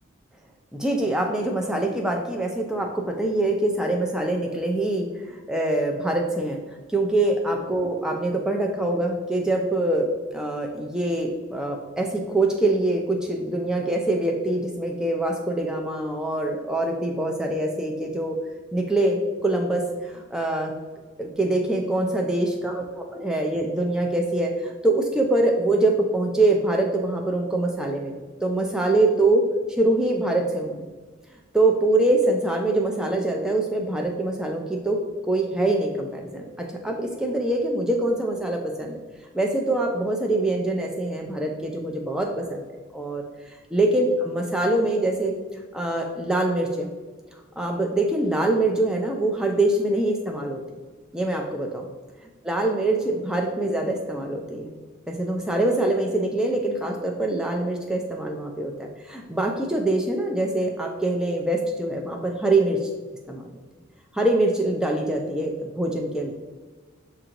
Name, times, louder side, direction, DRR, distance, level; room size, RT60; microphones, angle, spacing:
voice 1, 0.7-6.6 6.9-18.4 18.7-20.7 21.2-29.4 29.8-30.9 31.5-35.0 35.3-39.0 39.3-42.7 42.9-43.2 43.7-45.3 45.7-46.9 47.6-50.6 51.1-51.9 52.5-54.7 55.1-62.9 63.3-63.4 64.1-66.3, right 2 dB, 5° right, 1 dB, 0.3 m, -24 dB
6.6 x 2.5 x 2.9 m, 1.4 s
head